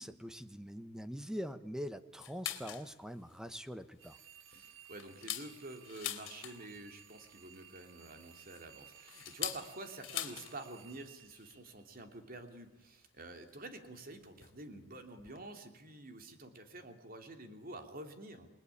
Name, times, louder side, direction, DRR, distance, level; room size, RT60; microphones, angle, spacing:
voice 1, 0.0-4.2, equal, 5° right, 11 dB, 1.1 m, -43 dB
sound 1, 2.2-2.9 3.3-3.4 3.8-4.0 4.5-6.8 8.0-10.6 10.8-10.9 11.2-11.5 12.5-12.6 13.5-13.6 14.4-14.6 14.9-15.0 15.2-15.4, left 12 dB, 75° left, 3.0 m, -42 dB
sound 2, 4.0-12.2, right 9 dB, 90° right, 1.9 m, -59 dB
voice 2, 4.5-18.5, right 2 dB, 50° right, 6 dB, 3.0 m, -49 dB
28.5 x 20.0 x 9.9 m, 1.1 s
head